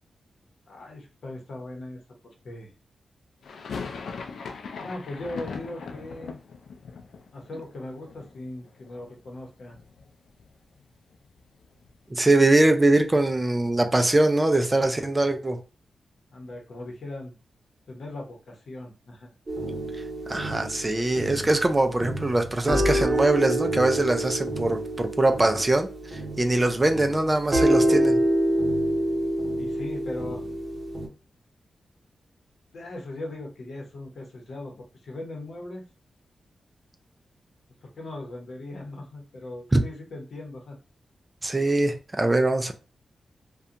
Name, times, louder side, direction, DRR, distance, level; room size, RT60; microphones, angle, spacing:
voice 1, 0.7-2.7 4.8-6.4 7.3-9.8 16.3-17.4 17.9-19.3 29.6-30.4 32.7-35.9 37.8-40.8, left 2 dB, 70° left, 0.8 m, -39 dB
sound 1, 3.4-9.4 9.6-10.5 10.7-10.8 11.1-13.3, left 5 dB, 85° left, 0.3 m, -40 dB
voice 2, 12.1-15.6 20.3-28.2 39.7-39.8 41.4-42.7, right 2 dB, 20° right, 0.3 m, -22 dB
sound 2, 19.5-31.1, right 1 dB, 40° right, 0.8 m, -27 dB
2.7 x 2.2 x 2.5 m
wide cardioid pair, 115°, 0 cm